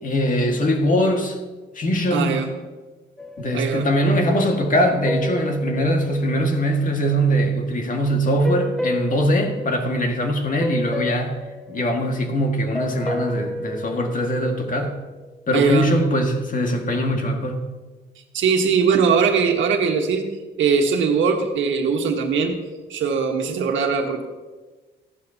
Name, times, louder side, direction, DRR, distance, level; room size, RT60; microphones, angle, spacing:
voice 1, 0.0-1.4 1.8-2.4 3.4-11.3 11.7-14.9 15.5-17.6, equal, 40° left, 3 dB, 2.0 m, -21 dB
voice 2, 2.1-2.5 3.5-3.9 15.5-15.9 18.3-22.6 22.9-24.2, right 5 dB, 75° right, 3 dB, 1.6 m, -20 dB
sound 1, 3.2-7.0 8.4-10.3 10.6-15.1, left 1 dB, 5° left, 0.6 m, -32 dB
14.5 x 11.5 x 2.9 m, 1.3 s
cardioid pair, 90°, 20 cm